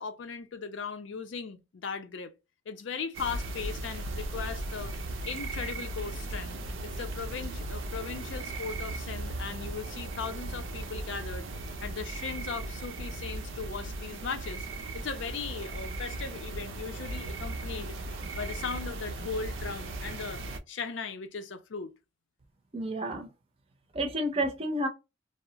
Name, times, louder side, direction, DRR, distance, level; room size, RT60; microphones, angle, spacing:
voice 1, 0.0-2.3 2.7-4.9 5.2-6.6 6.8-11.5 11.8-14.7 14.9-17.9 18.3-20.4 20.7-21.9, left 5 dB, 75° left, 0.5 m, -38 dB
sound 1, 3.1-20.6, right 2 dB, 90° right, 0.5 m, -37 dB
voice 2, 22.7-23.3 23.9-24.9, right 1 dB, 30° right, 0.5 m, -30 dB
2.3 x 2.0 x 3.7 m
head